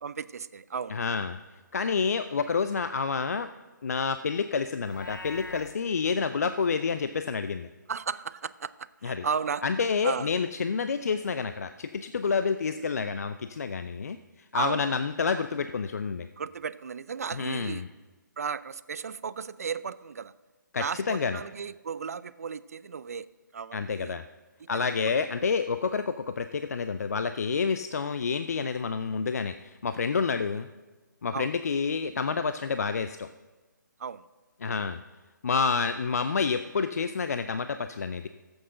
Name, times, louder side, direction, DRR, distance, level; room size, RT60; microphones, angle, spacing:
voice 1, 0.0-1.0 7.9-9.6 10.0-10.3 14.5-15.0 16.4-17.9 18.4-20.3 20.8-24.2 24.6-24.8 25.2-25.5 31.3-31.5 34.0-34.3, right 6 dB, 50° right, 17 dB, 0.4 m, -35 dB
voice 2, 0.9-1.4 1.7-3.5 3.8-7.7 9.0-9.3 9.6-14.2 14.5-16.3 17.3-17.8 20.7-21.4 23.7-24.2 24.7-30.7 31.2-33.3 34.6-35.0 35.4-38.3, left 5 dB, 50° left, 10 dB, 0.5 m, -28 dB
Livestock farm animals working animals, 4.8-5.7, left 2 dB, 75° left, 0.8 m, -42 dB
12.5 x 8.0 x 6.5 m, 1.2 s
figure-of-eight pair, 140°, 11 cm